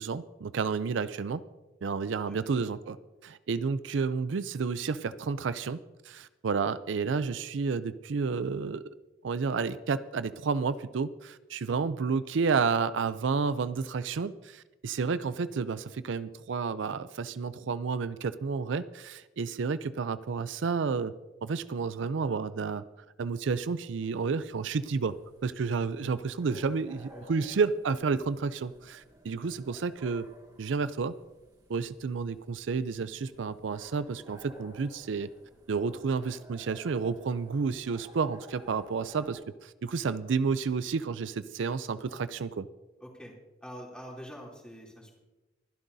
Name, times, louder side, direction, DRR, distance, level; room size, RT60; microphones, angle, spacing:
voice 1, 0.0-1.4 1.8-3.0 3.2-8.9 9.2-21.1 21.4-22.8 23.2-25.2 25.4-30.3 30.6-31.2 31.7-35.3 35.7-42.7, right 5 dB, 75° right, 14 dB, 0.4 m, -31 dB
voice 2, 2.2-2.6 27.1-27.5 43.0-43.3 43.6-45.2, equal, 5° left, -2 dB, 3.0 m, -46 dB
sound 1, 24.0-39.4, equal, 25° right, 3.2 m, -55 dB
24.0 x 11.5 x 2.7 m, 1.1 s
head